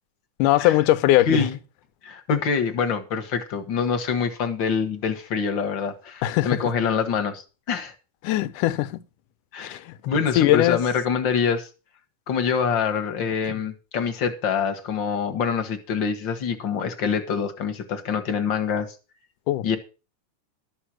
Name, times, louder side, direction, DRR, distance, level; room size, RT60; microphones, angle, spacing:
voice 1, 0.4-1.5 6.2-6.6 8.2-9.0 9.6-9.9 10.4-10.8 19.5-19.7, left 15 dB, 90° left, 2.3 m, -20 dB
voice 2, 1.3-1.6 2.0-7.4 7.7-7.9 9.5-9.8 10.0-11.7 12.3-18.9 19.6-19.8, left 6 dB, 50° left, 1.5 m, -25 dB
12.5 x 7.4 x 6.2 m
omnidirectional pair, 3.5 m